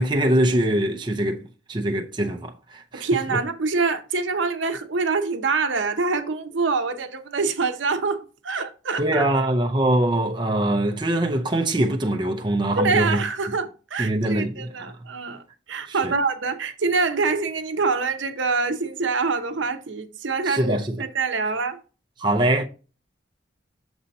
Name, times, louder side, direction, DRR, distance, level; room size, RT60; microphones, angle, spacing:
voice 1, 0.0-1.4 1.7-3.4 9.0-13.2 14.0-14.9 15.9-16.1 20.4-21.0 22.2-22.6, right 1 dB, 25° right, 0.5 m, -23 dB
voice 2, 2.9-9.2 12.8-15.4 15.7-21.8, right 4 dB, 80° right, 0.8 m, -25 dB
7.0 x 2.8 x 5.2 m
head